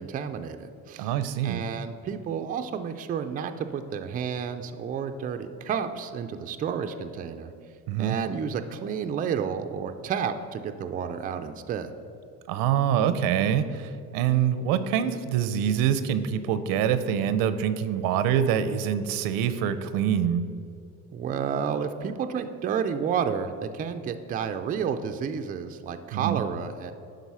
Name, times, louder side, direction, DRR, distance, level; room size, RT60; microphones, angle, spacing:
voice 1, 0.0-1.1 1.4-7.5 8.0-11.9 21.1-26.9, right 7 dB, 25° right, 8 dB, 0.4 m, -31 dB
voice 2, 1.0-1.6 7.9-8.2 12.5-20.4 26.1-26.4, right 9 dB, 85° right, 12 dB, 0.6 m, -25 dB
11.0 x 3.9 x 5.5 m, 2.5 s
cardioid pair, 145°, 34 cm